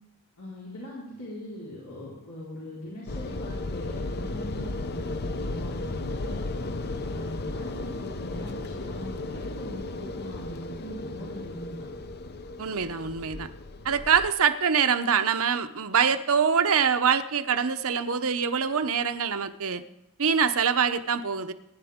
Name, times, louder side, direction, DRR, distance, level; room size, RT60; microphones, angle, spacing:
voice 1, 0.4-6.4 7.0-11.9, equal, 85° left, -7 dB, 4.5 m, -41 dB
sound 1, 3.1-14.3, left 2 dB, 45° left, 0.7 m, -35 dB
voice 2, 12.6-13.5 13.8-19.8 20.2-21.5, right 7 dB, 65° right, 10 dB, 0.8 m, -24 dB
23.5 x 10.5 x 3.7 m, 0.95 s
head